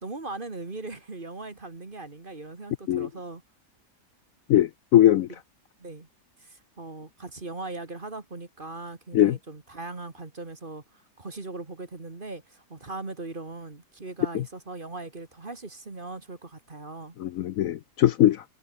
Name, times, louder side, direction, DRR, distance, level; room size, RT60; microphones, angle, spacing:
voice 1, 0.0-3.4 5.8-6.1 6.4-17.2, right 2 dB, 30° right, 2.2 m, -39 dB
voice 2, 4.5-5.3 9.1-9.4 14.3-14.4 17.2-18.4, left 12 dB, 65° left, 0.9 m, -21 dB
omnidirectional pair, 1.8 m